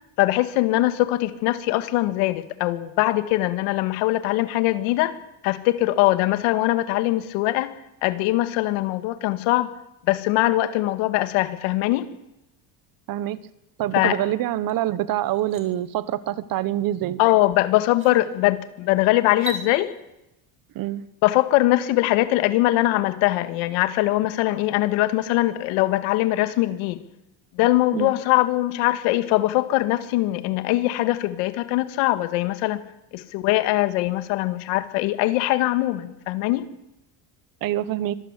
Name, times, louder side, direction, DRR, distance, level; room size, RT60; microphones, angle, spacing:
voice 1, 0.2-5.2 5.4-7.8 8.0-9.7 10.1-12.1 13.9-14.2 17.2-19.9 21.2-27.0 27.6-32.8 33.1-36.7, left 17 dB, 85° left, 11 dB, 2.1 m, -22 dB
voice 2, 13.1-13.5 13.8-17.2 20.7-21.0 27.9-28.1 37.6-38.1, right 13 dB, 50° right, 16 dB, 1.2 m, -25 dB
sound 1, 14.7-14.8 15.2-15.6 17.3-17.4 17.9-18.2 19.3-19.6, right 1 dB, 30° right, 4.5 m, -36 dB
25.0 x 18.0 x 8.3 m, 0.87 s
cardioid pair, 155°, 45 cm